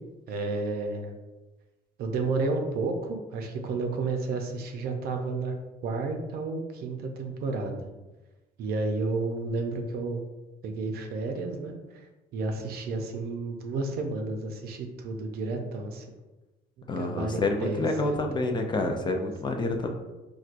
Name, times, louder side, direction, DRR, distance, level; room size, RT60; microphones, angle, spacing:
voice 1, 0.3-1.1 2.0-5.5 5.8-7.9 8.6-10.2 10.6-12.0 12.3-16.0 16.9-18.5, right 3 dB, 65° right, 4 dB, 0.6 m, -31 dB
voice 2, 16.9-19.9, left 2 dB, 25° left, 3 dB, 0.4 m, -28 dB
4.4 x 2.3 x 2.5 m, 1.1 s
cardioid pair, 110°, 17 cm